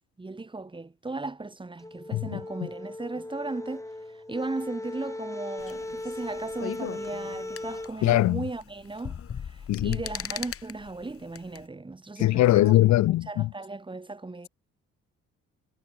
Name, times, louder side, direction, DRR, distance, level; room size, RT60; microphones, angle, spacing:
voice 1, 0.2-14.5, right 3 dB, 15° right, 1.5 m, -37 dB
sound 1, 1.8-7.9, left 2 dB, 10° left, 2.5 m, -38 dB
sound 2, 5.6-11.6, left 7 dB, 50° left, 3.1 m, -39 dB
voice 2, 8.0-8.4 9.7-10.0 12.2-13.5, left 16 dB, 70° left, 0.5 m, -21 dB
cardioid pair, 90°, 30 cm